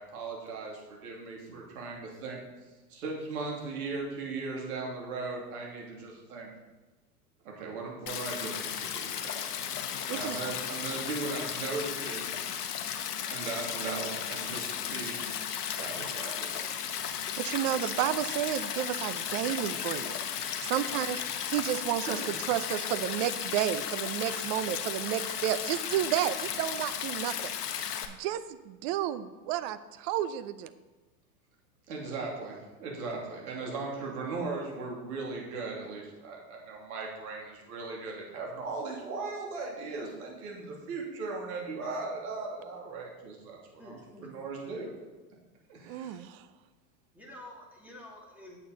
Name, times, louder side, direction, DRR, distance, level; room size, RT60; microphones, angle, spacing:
voice 1, 0.0-2.4 2.9-6.5 7.4-9.4 9.9-12.4 13.3-15.2 15.7-16.7 22.0-22.2 31.9-43.6 43.8-44.0 44.2-44.9 45.7-46.2, right 3 dB, 65° right, -1 dB, 2.8 m, -38 dB
Stream, 8.1-28.1, left 9 dB, 75° left, 1.1 m, -35 dB
voice 2, 10.1-10.4 17.4-20.2 20.6-22.2 22.5-27.5 28.1-30.7 45.9-46.5, right 12 dB, 40° right, 14 dB, 0.6 m, -31 dB
voice 3, 43.8-44.3 47.1-48.6, left 1 dB, 5° right, -2 dB, 2.6 m, -49 dB
8.7 x 8.4 x 4.0 m, 1.2 s
hypercardioid pair, 105°, 47 cm